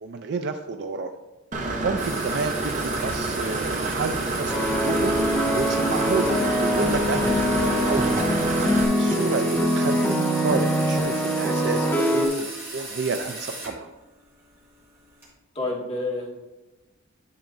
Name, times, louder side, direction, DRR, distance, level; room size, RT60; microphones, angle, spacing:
voice 1, 0.0-1.1 1.8-5.1 5.5-8.3 9.0-13.9, right 4 dB, 55° right, 6 dB, 0.4 m, -30 dB
Engine / Mechanisms, 1.5-8.8, right 2 dB, 35° right, 0.8 m, -28 dB
sound 1, 2.0-13.8 14.2-15.3, right 2 dB, 10° right, 2.6 m, -37 dB
sound 2, 4.5-12.3, equal, 10° left, 0.9 m, -23 dB
voice 2, 8.9-9.3 15.5-16.3, left 2 dB, 30° left, -4 dB, 1.9 m, -30 dB
10.0 x 6.7 x 2.6 m, 1.1 s
head